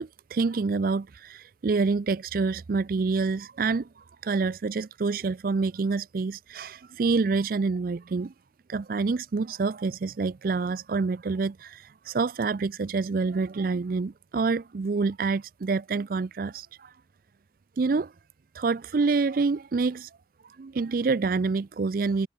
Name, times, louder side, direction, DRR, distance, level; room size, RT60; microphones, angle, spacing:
voice 1, 0.0-8.3 8.7-16.9 17.8-18.1 18.5-20.1 20.4-22.3, right 4 dB, 50° right, 0.4 m, -27 dB
head